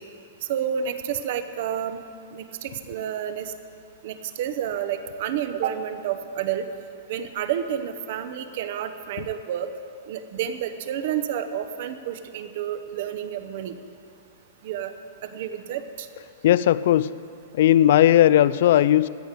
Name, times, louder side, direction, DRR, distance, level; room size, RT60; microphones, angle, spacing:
voice 1, 0.5-2.0 2.3-3.5 4.0-6.7 7.1-9.7 10.1-13.7 14.6-14.9 15.2-16.1, right 9 dB, 45° right, 10 dB, 0.9 m, -30 dB
voice 2, 16.4-17.1 17.6-19.1, left 12 dB, 55° left, 18 dB, 0.3 m, -17 dB
16.0 x 6.7 x 9.7 m, 2.4 s
supercardioid pair, 170°, 0 cm